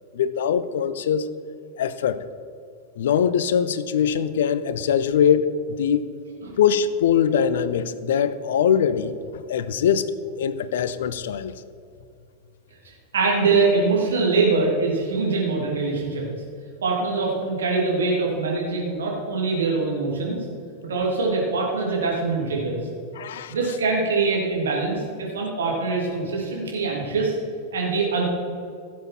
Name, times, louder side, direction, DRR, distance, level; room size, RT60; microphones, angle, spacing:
voice 1, 0.1-1.3 1.8-2.2 3.0-5.5 5.8-6.1 6.6-11.5 23.1-23.5, left 8 dB, 60° left, 14 dB, 0.6 m, -22 dB
voice 2, 12.8-16.2 16.8-20.4 20.9-22.8 23.5-27.3 27.7-28.3, right 3 dB, 65° right, -2 dB, 3.0 m, -23 dB
16.5 x 7.4 x 4.4 m, 2.4 s
figure-of-eight pair, 90°, 0 cm